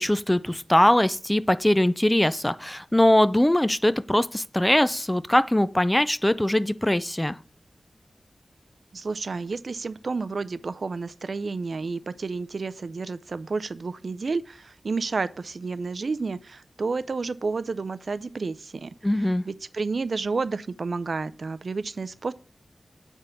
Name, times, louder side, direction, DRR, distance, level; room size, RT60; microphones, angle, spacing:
voice 1, 0.0-7.4 19.0-19.4, left 1 dB, 10° left, 0.3 m, -21 dB
voice 2, 8.9-18.9 19.4-22.3, right 4 dB, 60° right, 0.4 m, -30 dB
8.9 x 3.5 x 5.5 m
wide cardioid pair, 110°, 0 cm